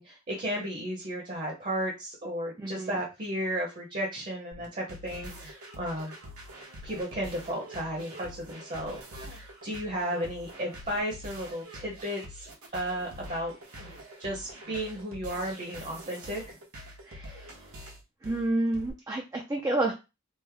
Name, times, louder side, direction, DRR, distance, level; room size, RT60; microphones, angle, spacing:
voice 1, 0.0-6.1 6.8-12.5 12.7-13.5 14.2-16.6, equal, 35° right, -2 dB, 0.8 m, -34 dB
voice 2, 2.6-2.9 17.1-17.5 18.2-19.9, right 2 dB, 15° right, 1 dB, 0.3 m, -30 dB
sound 1, 4.5-18.9, equal, 80° right, 1.0 m, -45 dB
3.2 x 2.0 x 3.4 m, 0.27 s
head